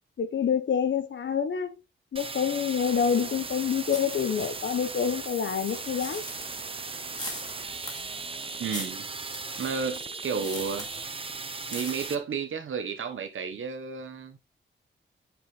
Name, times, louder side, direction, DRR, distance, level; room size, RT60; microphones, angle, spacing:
voice 1, 0.2-1.8 2.1-6.2, left 7 dB, 65° left, 1.0 m, -27 dB
sound 1, 2.2-12.2, right 4 dB, 25° right, 0.7 m, -37 dB
sound 2, 3.9-4.3 4.7-11.3 11.6-12.1, left 1 dB, 20° left, 2.2 m, -42 dB
voice 2, 8.6-9.1 9.6-10.9 11.7-14.4, right 6 dB, 75° right, 1.3 m, -32 dB
8.9 x 5.0 x 3.3 m
wide cardioid pair, 165°, 21 cm